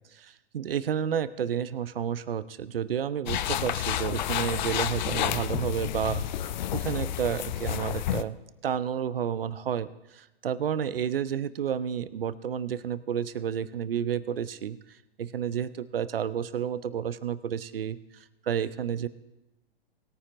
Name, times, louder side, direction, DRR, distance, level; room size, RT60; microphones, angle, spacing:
voice 1, 0.1-6.2 6.7-8.4 8.6-14.8 15.2-19.1, right 8 dB, 65° right, 15 dB, 0.8 m, -31 dB
sound 1, 3.3-8.2, left 11 dB, 45° left, 0.6 m, -30 dB
20.5 x 9.6 x 2.6 m, 1.0 s
figure-of-eight pair, 110°, 31 cm